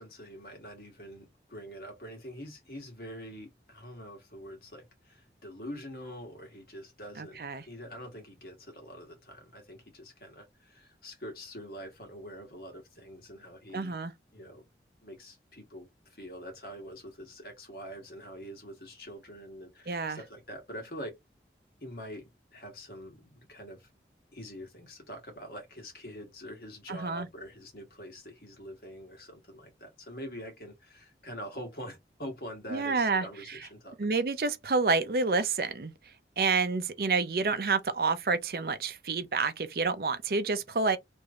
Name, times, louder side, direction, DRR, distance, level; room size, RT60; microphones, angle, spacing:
voice 1, 0.0-13.9 14.3-14.6 15.0-21.2 21.8-23.9 24.3-34.1, equal, 55° left, 1.5 m, -45 dB
voice 2, 7.2-7.6 13.7-14.1 19.9-20.2 26.9-27.3 32.7-33.2 34.0-35.9 36.4-41.0, right 4 dB, 55° right, 0.5 m, -28 dB
3.1 x 2.6 x 3.5 m
head